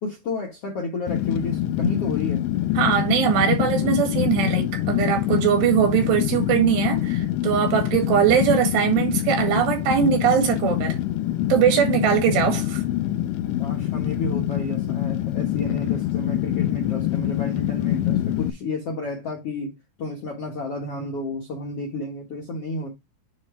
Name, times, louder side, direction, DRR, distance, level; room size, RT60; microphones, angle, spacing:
voice 1, 0.0-2.5 13.6-22.9, left 2 dB, 65° left, 1.5 m, -31 dB
Fire, 1.1-18.5, left 13 dB, 80° left, 2.4 m, -25 dB
voice 2, 2.8-11.0 11.5-12.8, right 9 dB, 80° right, 3.9 m, -21 dB
9.5 x 3.8 x 3.3 m
omnidirectional pair, 4.9 m